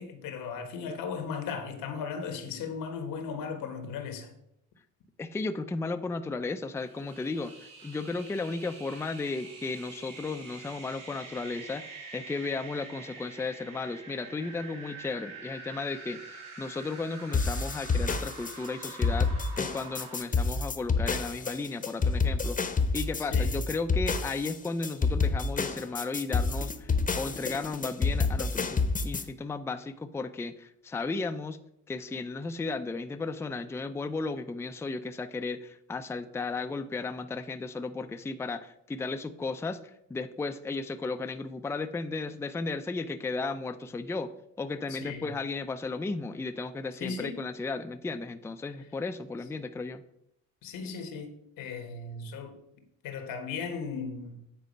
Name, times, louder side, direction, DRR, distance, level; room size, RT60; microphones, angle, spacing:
voice 1, 0.0-4.3 23.3-23.6 44.9-45.3 47.0-47.4 50.6-52.6 53.0-54.4, left 5 dB, 85° left, 1.4 m, -37 dB
voice 2, 5.2-19.3 19.6-22.6 22.9-31.6 31.9-44.3 44.6-50.0, left 3 dB, 10° left, 0.4 m, -34 dB
sound 1, 6.8-20.2, right 4 dB, 75° right, 2.3 m, -46 dB
sound 2, 17.3-29.2, left 4 dB, 25° left, 0.8 m, -28 dB
9.0 x 4.1 x 5.3 m
cardioid pair, 100°, 33 cm